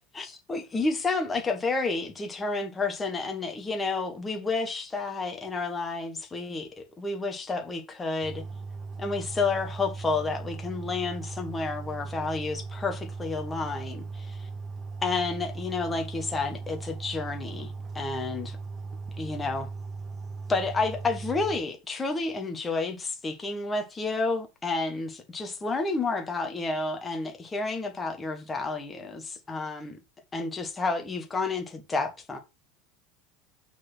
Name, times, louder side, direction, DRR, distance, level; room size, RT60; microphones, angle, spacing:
voice 1, 0.1-8.4 9.0-14.5 15.0-18.6 19.2-19.7 20.5-30.0 30.3-32.4, left 3 dB, 15° left, 1.4 m, -30 dB
sound 1, 8.2-21.6, right 4 dB, 25° right, 0.9 m, -38 dB
6.1 x 4.3 x 6.1 m
supercardioid pair, 160°, 0 cm